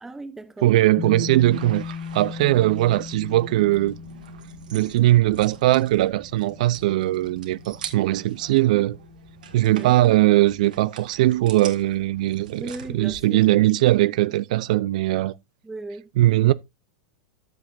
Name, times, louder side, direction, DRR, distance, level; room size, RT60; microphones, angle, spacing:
voice 1, 0.0-0.7 9.7-10.0 12.6-13.7 15.6-16.1, right 2 dB, 10° right, 0.6 m, -37 dB
voice 2, 0.6-4.0 4.7-9.0 9.5-15.3 16.2-16.5, right 16 dB, 70° right, 0.4 m, -20 dB
sound 1, 1.0-10.4, left 6 dB, 30° left, 1.7 m, -39 dB
sound 2, 1.5-13.2, right 6 dB, 90° right, 1.8 m, -44 dB
14.0 x 5.8 x 2.5 m
hypercardioid pair, 115°, 4 cm